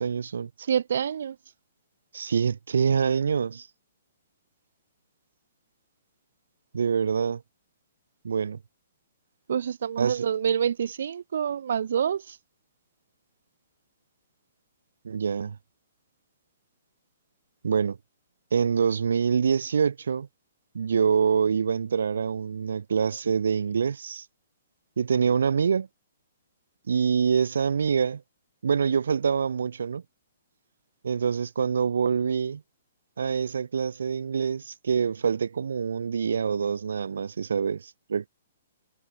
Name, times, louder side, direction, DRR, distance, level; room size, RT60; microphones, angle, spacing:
voice 1, 0.0-0.5 2.1-3.7 6.7-7.4 8.2-8.6 10.0-10.2 15.0-15.6 17.6-18.0 18.5-20.3 20.7-24.2 25.0-25.9 26.9-28.2 28.6-30.0 31.0-32.6 33.2-38.3, right 6 dB, 85° right, 6.3 m, -25 dB
voice 2, 0.7-1.4 9.5-12.4, right 8 dB, 65° right, 2.5 m, -27 dB
hypercardioid pair, 170°, 0 cm